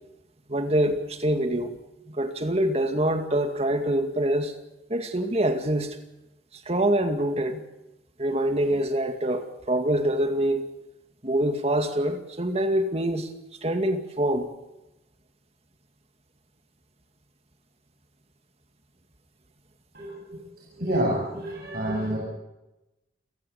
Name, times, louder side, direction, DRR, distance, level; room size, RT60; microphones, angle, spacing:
voice 1, 0.5-1.7 2.1-4.6 4.9-6.0 6.7-7.6 8.2-10.6 11.2-13.3 13.6-14.5, right 1 dB, 35° right, 2.2 m, -25 dB
voice 2, 19.9-20.4 20.7-22.2, right 1 dB, 55° right, 7.6 m, -28 dB
29.5 x 16.5 x 7.1 m
head